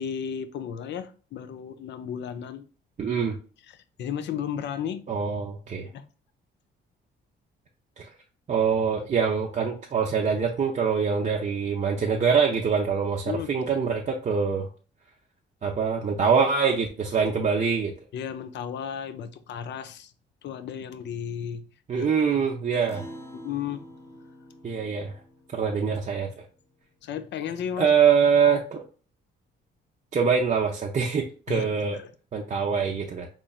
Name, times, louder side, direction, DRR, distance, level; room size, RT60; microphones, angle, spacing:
voice 1, 0.0-2.7 3.7-5.1 5.8-6.1 13.3-13.5 18.1-20.1 20.4-21.7 22.0-22.1 22.7-22.9 23.3-23.8 27.0-27.9 31.5-32.1, left 8 dB, 65° left, 0.5 m, -34 dB
voice 2, 3.0-3.4 5.1-5.9 8.0-8.1 8.5-14.7 15.6-17.9 21.9-23.0 24.6-25.2 25.5-26.4 27.8-28.8 30.1-32.0 32.3-33.3, right 6 dB, 35° right, 0.5 m, -24 dB
Acoustic guitar, 22.9-27.6, equal, 15° left, 0.8 m, -47 dB
4.1 x 3.1 x 2.3 m
cardioid pair, 90°, 20 cm